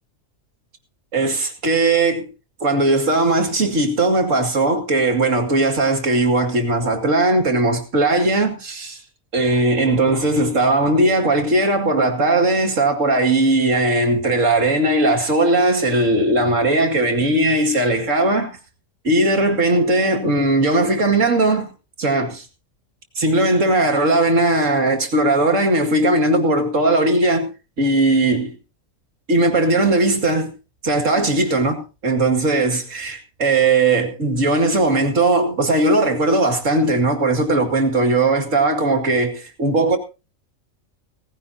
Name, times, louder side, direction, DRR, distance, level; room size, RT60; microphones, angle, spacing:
voice 1, 1.1-2.3 2.6-9.0 9.3-18.6 19.0-21.7 22.0-22.5 23.2-27.5 27.8-28.5 29.3-30.5 30.8-40.0, right 2 dB, 65° right, 2.5 m, -18 dB
18.0 x 15.0 x 2.8 m
omnidirectional pair, 1.4 m